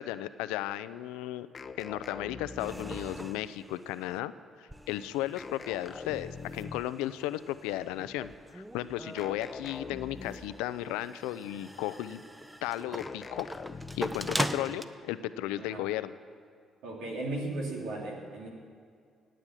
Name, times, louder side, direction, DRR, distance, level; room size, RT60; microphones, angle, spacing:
voice 1, 0.0-1.5 1.8-4.3 4.6-12.2 12.6-13.5 13.9-16.1, left 14 dB, 85° left, 14 dB, 0.5 m, -35 dB
sound 1, 1.5-3.3 5.4-7.0 9.2-10.7 13.0-14.6, left 4 dB, 40° left, 0.8 m, -43 dB
sound 2, 2.6-4.2 4.7-14.8, right 1 dB, 10° right, 0.9 m, -41 dB
voice 2, 16.8-18.5, right 2 dB, 80° right, 0 dB, 3.1 m, -36 dB
18.0 x 7.9 x 9.0 m, 2.2 s
supercardioid pair, 60°, 0 cm